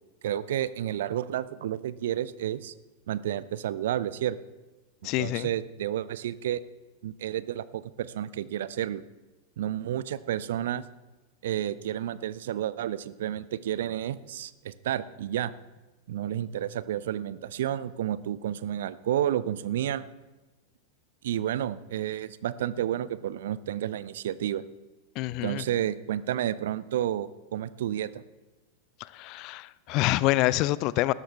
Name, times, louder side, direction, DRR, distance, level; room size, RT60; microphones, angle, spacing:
voice 1, 0.2-2.7 3.1-4.4 5.2-6.6 7.0-9.0 9.6-10.8 11.4-15.5 16.1-20.0 21.2-24.6 25.4-28.2, right 11 dB, 60° right, 17 dB, 0.5 m, -31 dB
voice 2, 5.0-5.5 25.2-25.6 29.0-31.1, left 17 dB, 40° left, 20 dB, 0.4 m, -26 dB
19.0 x 12.0 x 3.4 m, 1.1 s
figure-of-eight pair, 90°, 0 cm